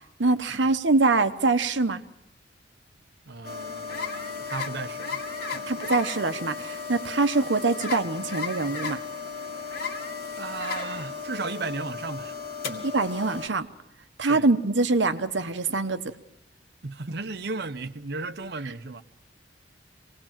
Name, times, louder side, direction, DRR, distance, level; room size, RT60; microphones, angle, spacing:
voice 1, 0.2-2.0 5.7-9.0 12.8-13.7 14.2-16.0, right 3 dB, 85° right, 1.1 m, -24 dB
voice 2, 3.3-5.2 5.5-5.7 10.4-12.4 12.6-12.9 14.3-14.5 16.8-19.0, right 3 dB, 65° right, 0.9 m, -35 dB
sound 1, 3.4-13.5, left 5 dB, 60° left, 2.2 m, -35 dB
26.0 x 19.0 x 7.5 m
head